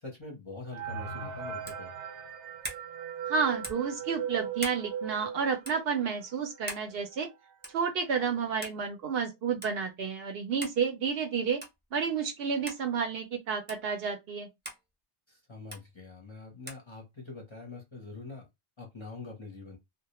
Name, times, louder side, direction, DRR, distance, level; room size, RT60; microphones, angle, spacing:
voice 1, 0.0-1.9 15.3-18.5 18.8-19.8, left 3 dB, 30° left, 0.6 m, -44 dB
sound 1, 0.7-6.2 6.6-6.7 6.9-7.1 7.8-7.9 8.3-8.6, right 7 dB, 85° right, 0.9 m, -38 dB
sound 2, 1.6-1.9 2.6-2.9 3.6-3.9 4.6-4.8 5.6-5.8 6.7-6.9 7.6-7.9 8.6-8.8 9.6-9.7 10.6-10.8 11.6-11.8 12.7-12.8 13.7-13.8 14.6-14.8 15.7-15.8 16.7-16.8, right 1 dB, 15° right, 0.3 m, -41 dB
voice 2, 3.3-7.3 7.7-11.6 11.9-14.5, right 6 dB, 65° right, 0.7 m, -31 dB
2.2 x 2.1 x 2.9 m
omnidirectional pair, 1.2 m